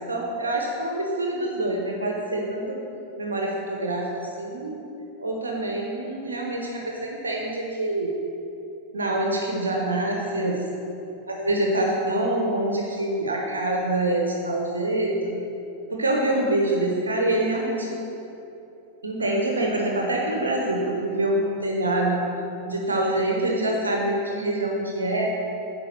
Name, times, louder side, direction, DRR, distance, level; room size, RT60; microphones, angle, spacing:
voice 1, 0.0-2.8 3.2-4.8 5.2-8.1 8.9-10.7 11.3-15.4 15.9-17.9 19.0-22.2 22.7-25.3, right 1 dB, 75° right, 0 dB, 1.0 m, -25 dB
9.9 x 4.9 x 6.3 m, 2.9 s
figure-of-eight pair, 90°, 0 cm